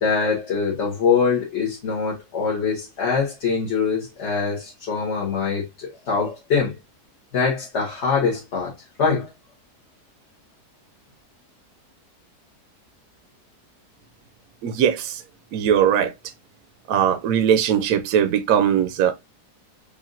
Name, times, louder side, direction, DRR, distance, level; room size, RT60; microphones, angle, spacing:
voice 1, 0.0-6.8 7.3-8.7 9.0-9.3, left 5 dB, 45° left, 1.3 m, -23 dB
voice 2, 14.6-15.2 15.5-16.1 16.9-19.1, right 9 dB, 70° right, 0.9 m, -20 dB
5.0 x 2.6 x 2.5 m
omnidirectional pair, 1.7 m